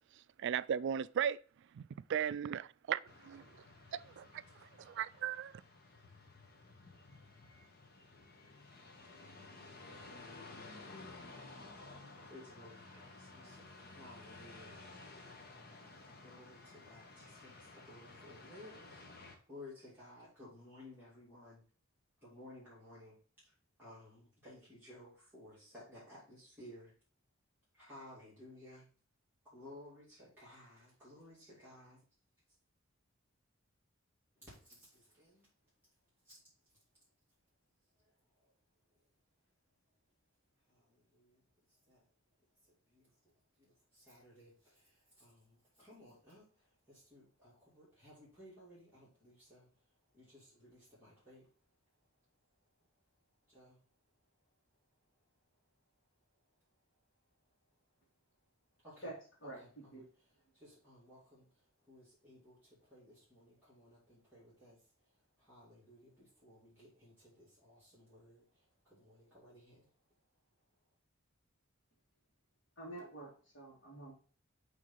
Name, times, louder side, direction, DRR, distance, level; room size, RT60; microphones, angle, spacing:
voice 1, 0.1-1.4 1.7-1.8 2.1-3.6 3.9-4.3 4.5-5.6, right 8 dB, 60° right, 0.3 m, -37 dB
sound 1, 3.1-19.4, left 3 dB, 50° left, 1.3 m, -54 dB
voice 2, 12.2-14.8 16.2-19.0 19.5-21.6 22.2-23.2 23.4-26.9 27.7-28.9 29.4-32.0 34.3-35.5 36.2-36.3 38.0-38.6 38.9-39.1 40.7-42.1 42.6-51.5 52.8-52.9 53.5-53.8 55.2-55.6 57.5-57.6 58.8-59.1 59.4-60.1 60.5-69.9, left 1 dB, 10° right, 2.9 m, -58 dB
voice 3, 59.0-60.0 72.8-74.1, right 2 dB, 65° left, 2.4 m, -48 dB
6.3 x 3.8 x 5.5 m
head